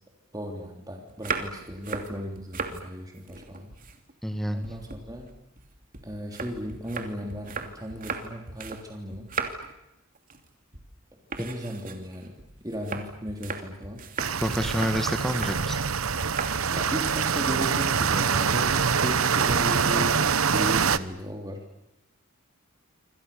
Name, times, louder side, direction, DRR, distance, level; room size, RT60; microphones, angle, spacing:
voice 1, 0.3-3.7 4.5-5.3 6.0-9.3 11.4-12.3 12.6-14.0 16.7-21.6, equal, 20° right, 1 dB, 3.3 m, -36 dB
sound 1, 1.1-2.8 3.2-4.3 4.6-8.9 9.1-9.8 10.1-10.5 10.7-10.9 11.3-15.6 16.2-16.6 16.9-17.3, right 5 dB, 40° right, 3.0 m, -37 dB
voice 2, 4.2-4.7 11.4-11.5 14.4-15.8, equal, ahead, 6 dB, 1.9 m, -28 dB
sound 2, 14.2-21.0, right 6 dB, 80° right, 1.0 m, -25 dB
27.5 x 26.5 x 7.0 m, 0.88 s
head